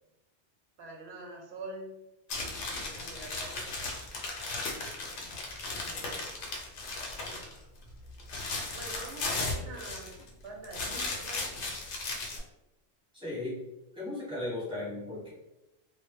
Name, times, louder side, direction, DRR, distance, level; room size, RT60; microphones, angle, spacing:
voice 1, 0.8-1.9 2.5-3.8 5.7-6.3 7.1-7.5 8.7-11.5, right 2 dB, 65° right, -1 dB, 0.7 m, -45 dB
rasguñando papel metal, 2.3-7.6 7.9-10.3 10.6-12.4, left 3 dB, 75° left, 0.8 m, -36 dB
voice 2, 13.1-13.6 13.9-15.3, left 2 dB, 5° right, -8 dB, 0.9 m, -36 dB
2.1 x 2.1 x 3.0 m, 0.95 s
omnidirectional pair, 1.2 m